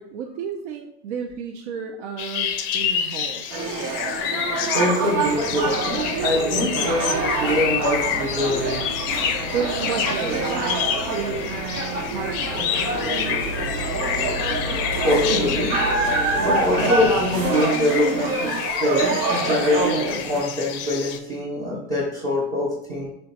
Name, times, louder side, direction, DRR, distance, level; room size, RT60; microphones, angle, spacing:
voice 1, 0.0-3.7 5.7-5.8 9.5-10.8 11.1-13.6, right 6 dB, 70° right, 3 dB, 0.5 m, -32 dB
sound 1, 2.2-21.2, left 9 dB, 50° left, 0.4 m, -29 dB
sound 2, 3.5-20.4, right 3 dB, 90° right, 0.9 m, -26 dB
voice 2, 4.7-9.0 15.0-15.8 16.3-23.1, left 1 dB, 20° right, -6 dB, 0.6 m, -24 dB
sound 3, 5.2-17.4, left 1 dB, 5° left, 0.8 m, -34 dB
3.7 x 2.2 x 4.0 m, 0.86 s
supercardioid pair, 165°, 36 cm